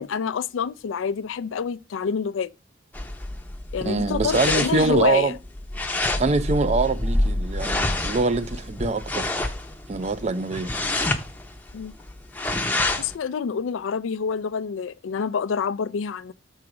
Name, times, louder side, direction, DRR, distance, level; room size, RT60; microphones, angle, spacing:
voice 1, 0.0-2.5 3.7-5.4 11.7-11.9 13.0-16.3, left 6 dB, 90° left, 0.4 m, -27 dB
sound 1, 2.9-13.2, left 2 dB, 10° left, 0.6 m, -27 dB
voice 2, 3.8-5.3 6.2-9.3 9.9-10.7, right 3 dB, 35° right, 0.4 m, -24 dB
6.4 x 3.9 x 5.8 m
head